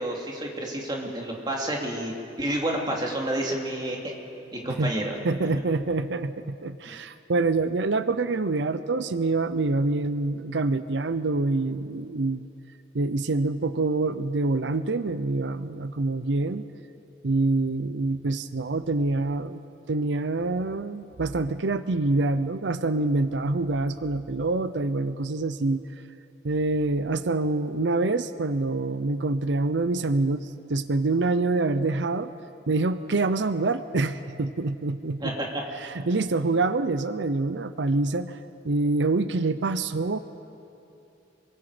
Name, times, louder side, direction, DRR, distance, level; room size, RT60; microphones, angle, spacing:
voice 1, 0.0-2.1 2.4-4.1 4.5-5.1 35.2-35.3, right 1 dB, 25° right, -1 dB, 2.9 m, -29 dB
voice 2, 5.2-12.5 12.9-16.6 17.2-19.6 19.9-25.8 26.4-32.3 32.7-35.3 35.8-38.4 38.6-40.2, right 3 dB, 75° right, 12 dB, 0.7 m, -26 dB
27.5 x 23.0 x 5.1 m, 2.8 s
head